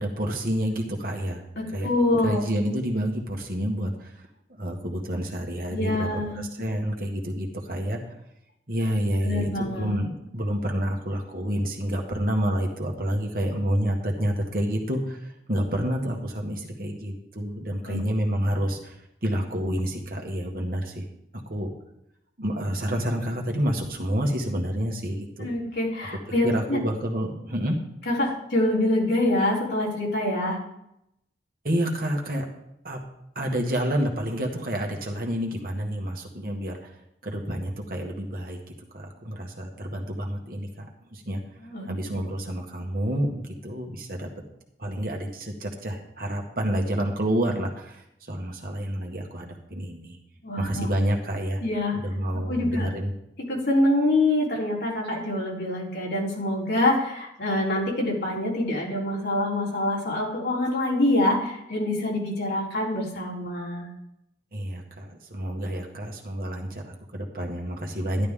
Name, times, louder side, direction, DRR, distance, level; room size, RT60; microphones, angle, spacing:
voice 1, 0.0-1.4 1.7-1.9 2.2-4.2 4.5-8.2 8.7-21.1 21.5-21.7 22.4-25.5 26.4-27.8 31.6-32.5 32.8-33.0 33.4-36.9 37.2-38.6 38.9-41.4 41.8-44.3 44.8-50.2 50.6-51.6 51.9-53.1 64.5-68.3, equal, 55° right, 1 dB, 1.8 m, -29 dB
voice 2, 1.5-2.4 5.7-6.4 9.2-10.0 17.8-18.0 25.4-26.8 28.1-30.6 41.6-41.9 50.4-50.9 51.6-52.0 52.5-52.9 53.5-63.9, left 1 dB, 65° left, -4 dB, 3.7 m, -25 dB
12.0 x 11.5 x 3.7 m, 0.79 s
head